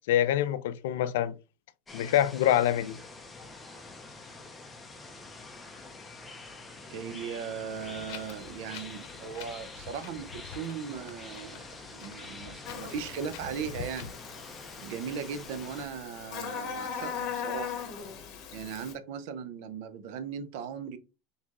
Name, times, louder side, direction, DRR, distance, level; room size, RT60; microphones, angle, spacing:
voice 1, 0.1-1.3 1.9-3.0, left 11 dB, 80° left, 0.4 m, -25 dB
sound 1, 1.9-15.9, left 3 dB, 10° left, 0.6 m, -46 dB
voice 2, 6.9-14.1 14.8-17.8 18.5-21.0, right 7 dB, 65° right, 0.7 m, -38 dB
Wind, 7.7-14.1, left 8 dB, 65° left, 0.8 m, -47 dB
Buzz, 12.6-18.9, left 7 dB, 45° left, 1.1 m, -39 dB
4.3 x 3.4 x 3.0 m
supercardioid pair, 145°, 0 cm